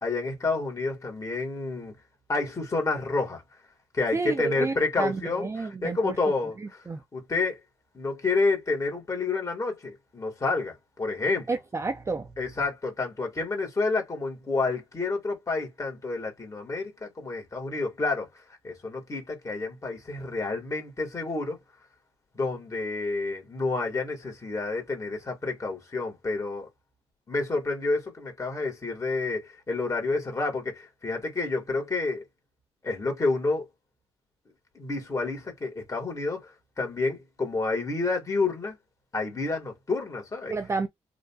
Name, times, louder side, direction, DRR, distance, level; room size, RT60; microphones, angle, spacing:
voice 1, 0.0-2.0 2.3-3.4 3.9-6.8 7.1-7.6 7.9-11.5 12.4-18.3 18.6-21.6 22.3-26.7 27.3-32.2 32.8-33.7 34.7-38.8 39.1-40.5, left 3 dB, 30° left, 1.8 m, -29 dB
voice 2, 4.1-6.2 6.6-7.0 11.5-12.3 40.5-40.9, right 4 dB, 25° right, 0.5 m, -30 dB
3.8 x 2.6 x 2.3 m
cardioid pair, 80°, 11 cm